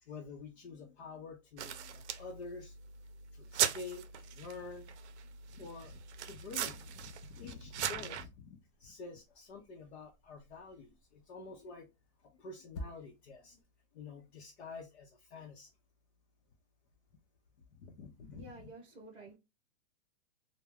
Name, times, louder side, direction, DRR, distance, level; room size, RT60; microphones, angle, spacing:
voice 1, 0.0-2.7 3.3-4.9 5.5-11.9 12.4-13.6 13.9-15.7 17.8-18.6, left 4 dB, 65° left, 0.7 m, -48 dB
sound 1, 1.6-8.2, right 9 dB, 75° right, 0.5 m, -39 dB
sound 2, 8.6-13.6, left 1 dB, 25° left, 0.4 m, -53 dB
voice 2, 18.3-19.4, right 2 dB, 10° right, 0.8 m, -51 dB
2.3 x 2.1 x 3.3 m
hypercardioid pair, 150°, 34 cm